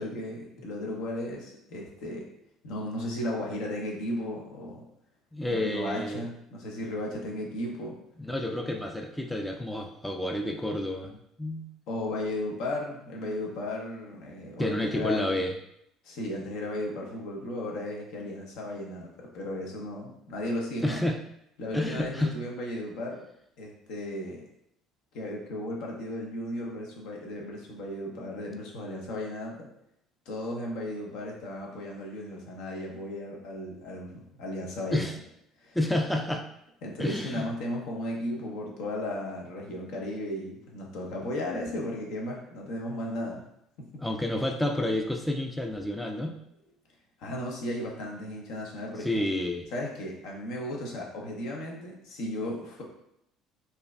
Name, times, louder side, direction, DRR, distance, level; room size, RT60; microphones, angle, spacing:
voice 1, 0.0-2.2 2.6-4.8 5.4-8.0 11.9-15.3 16.0-21.0 21.6-23.2 23.6-24.4 25.1-29.7 30.3-35.1 35.6-35.8 36.8-43.4 43.8-44.0 47.2-49.2 49.7-52.8, left 1 dB, 65° left, -1 dB, 0.7 m, -35 dB
voice 2, 5.3-6.3 8.2-11.7 14.6-15.5 20.8-21.2 21.7-22.4 34.9-35.2 35.7-36.4 37.0-37.5 44.0-46.4 49.0-49.7, left 1 dB, 5° left, 3 dB, 0.4 m, -29 dB
4.3 x 2.6 x 2.2 m, 0.77 s
hypercardioid pair, 60°, 0 cm